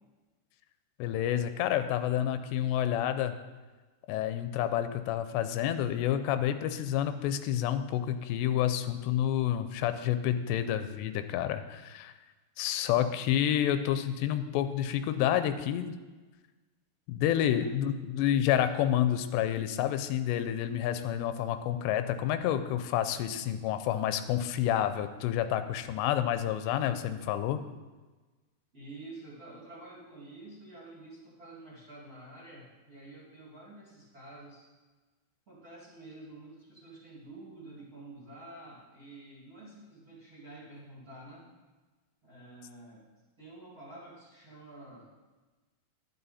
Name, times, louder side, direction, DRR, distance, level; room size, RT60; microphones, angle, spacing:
voice 1, 1.0-3.4 4.1-12.1 12.6-16.0 17.1-27.6, left 11 dB, 85° left, 10 dB, 2.8 m, -29 dB
voice 2, 28.7-34.7 35.5-41.4 42.2-43.1 43.4-45.1, right 2 dB, 25° right, -6 dB, 2.1 m, -49 dB
11.0 x 10.0 x 4.2 m, 1.2 s
omnidirectional pair, 5.0 m